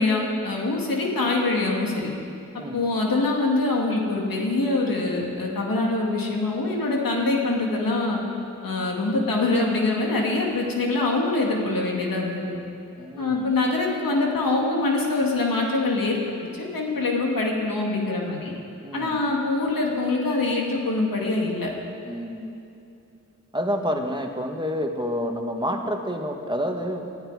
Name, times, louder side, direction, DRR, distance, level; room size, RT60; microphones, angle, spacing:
voice 1, 0.0-2.1 2.7-8.2 8.6-12.6 13.2-18.5 18.9-21.7, left 2 dB, 85° left, -1 dB, 2.3 m, -24 dB
voice 2, 13.0-13.5 18.8-19.2 22.0-22.6 23.5-27.2, equal, 15° right, 2 dB, 1.7 m, -29 dB
19.5 x 12.0 x 4.9 m, 2.7 s
cardioid pair, 45°, 33 cm